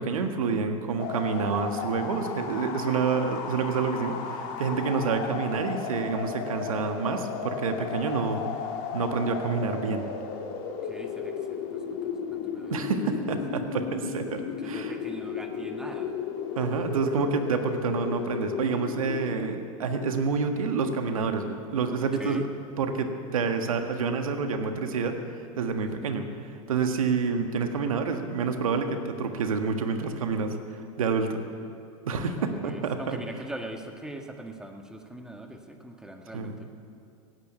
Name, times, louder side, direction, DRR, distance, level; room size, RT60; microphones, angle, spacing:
voice 1, 0.0-8.4 8.9-10.1 12.7-14.9 16.5-22.4 22.8-26.2 26.7-30.6 31.0-31.4 32.0-33.2 36.3-36.6, right 5 dB, 80° right, 6 dB, 1.6 m, -28 dB
sound 1, 1.0-19.5, left 7 dB, 50° left, 1.8 m, -34 dB
voice 2, 10.6-12.9 13.3-13.4 14.5-16.2 22.1-22.5 25.8-26.2 32.1-36.7, right 1 dB, 5° right, 3 dB, 1.6 m, -42 dB
16.0 x 9.6 x 9.2 m, 2.5 s
hypercardioid pair, 100°, 18 cm